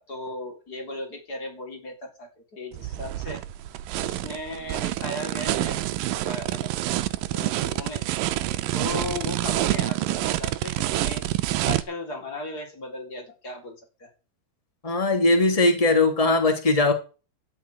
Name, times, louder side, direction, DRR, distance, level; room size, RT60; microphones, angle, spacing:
voice 1, 0.0-3.4 4.0-5.8 6.1-6.7 7.2-8.1 8.7-11.2 11.7-14.1, left 2 dB, 25° left, 3.8 m, -36 dB
sound 1, 2.7-11.8, right 15 dB, 75° right, 2.3 m, -27 dB
voice 2, 14.8-16.9, left 2 dB, 70° left, 0.3 m, -20 dB
12.5 x 6.7 x 9.3 m
omnidirectional pair, 4.5 m